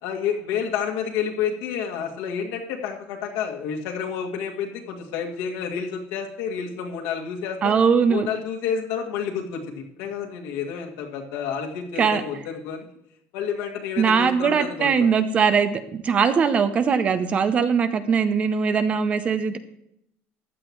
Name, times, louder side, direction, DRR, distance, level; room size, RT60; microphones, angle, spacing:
voice 1, 0.0-7.8 8.1-12.8 13.3-15.1, left 7 dB, 85° left, 1 dB, 2.2 m, -29 dB
voice 2, 7.6-8.3 12.0-12.2 14.0-19.6, right 6 dB, 25° right, 11 dB, 0.7 m, -21 dB
15.0 x 11.0 x 3.1 m, 0.75 s
cardioid pair, 180°, 5 cm